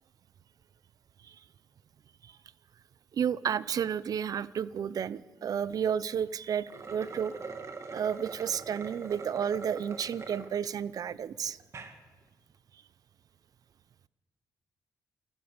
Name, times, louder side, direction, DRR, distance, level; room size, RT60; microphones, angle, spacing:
voice 1, 3.1-7.3 7.9-11.6, right 8 dB, 60° right, 18 dB, 0.7 m, -31 dB
sound 1, 6.6-10.5 11.0-11.1 11.6-12.0, right 4 dB, 45° right, 2.5 m, -43 dB
27.5 x 13.5 x 8.8 m, 1.5 s
cardioid pair, 85°, 7 cm